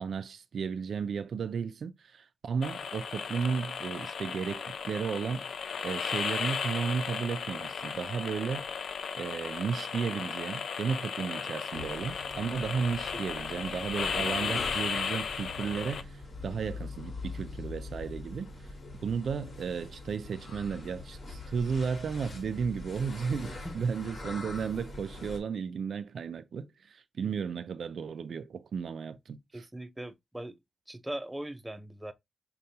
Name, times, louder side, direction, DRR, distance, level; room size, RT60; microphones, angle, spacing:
voice 1, 0.0-5.5 5.8-8.7 9.2-16.2 16.4-18.5 19.0-29.6, right 6 dB, 75° right, 0.4 m, -34 dB
sound 1, 2.6-16.0, left 6 dB, 85° left, 0.4 m, -35 dB
sound 2, 11.7-25.4, left 3 dB, 50° left, 1.8 m, -43 dB
voice 2, 29.5-30.6 30.9-32.1, right 1 dB, 10° right, 0.5 m, -40 dB
6.5 x 2.2 x 2.8 m
wide cardioid pair, 125°, 0 cm